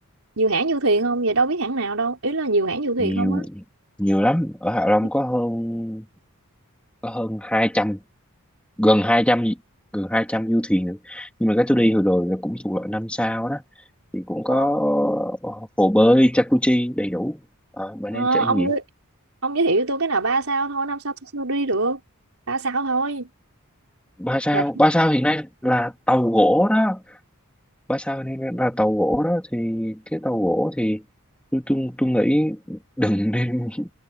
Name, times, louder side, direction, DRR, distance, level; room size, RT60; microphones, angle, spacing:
voice 1, 0.4-3.4 5.0-5.1 14.5-14.8 18.1-18.8 19.4-22.0 22.5-23.3 24.5-24.6, right 3 dB, 70° right, 5.0 m, -23 dB
voice 2, 3.0-3.5 4.0-6.1 7.0-8.0 8.8-9.6 9.9-13.6 14.1-17.4 17.8-18.7 24.2-27.0 27.9-31.0 31.5-33.9, equal, 5° left, 2.3 m, -21 dB
head